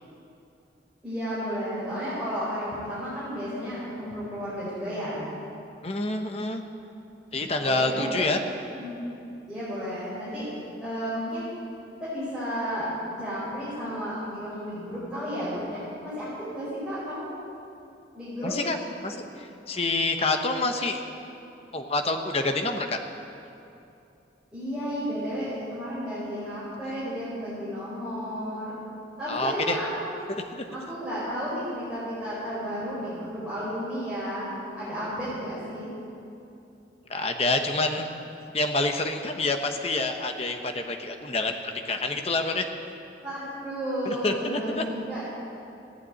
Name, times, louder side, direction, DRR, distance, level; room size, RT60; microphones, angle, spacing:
voice 1, 1.0-5.2 7.6-8.1 8.8-9.0 9.5-10.5 10.8-11.5 12.0-17.3 18.1-18.5 24.5-28.8 29.2-30.1 30.7-35.9 43.2-45.2, equal, 5° right, -13 dB, 4.8 m, -32 dB
voice 2, 5.8-6.6 7.3-8.4 18.4-18.8 19.0-21.0 21.7-23.0 29.3-29.8 37.1-38.1 38.5-42.6 44.0-44.8, left 2 dB, 35° left, 5 dB, 1.0 m, -27 dB
15.5 x 9.2 x 8.7 m, 2.8 s
head